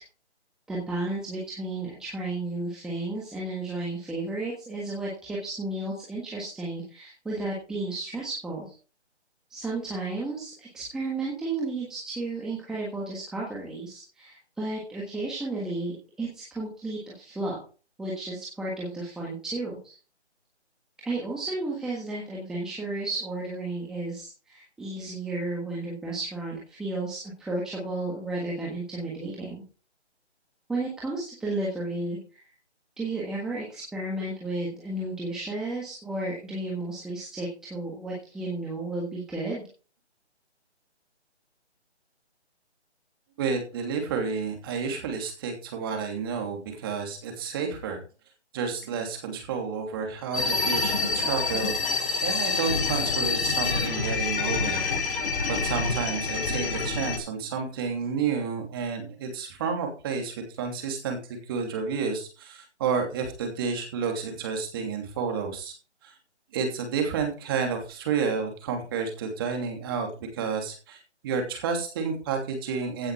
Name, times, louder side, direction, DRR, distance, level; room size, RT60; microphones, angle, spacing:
voice 1, 0.7-8.7 9.5-17.6 18.0-19.9 21.0-29.6 30.7-32.4 33.0-39.6, right 2 dB, ahead, -5 dB, 1.5 m, -33 dB
voice 2, 43.4-48.0 48.5-54.8 55.5-65.7 66.0-66.1 66.5-73.1, right 5 dB, 20° right, 3 dB, 2.9 m, -30 dB
sound 1, 50.3-57.2, left 4 dB, 50° left, 6.7 m, -27 dB
16.0 x 6.9 x 4.9 m, 0.35 s
hypercardioid pair, 165°, 35 cm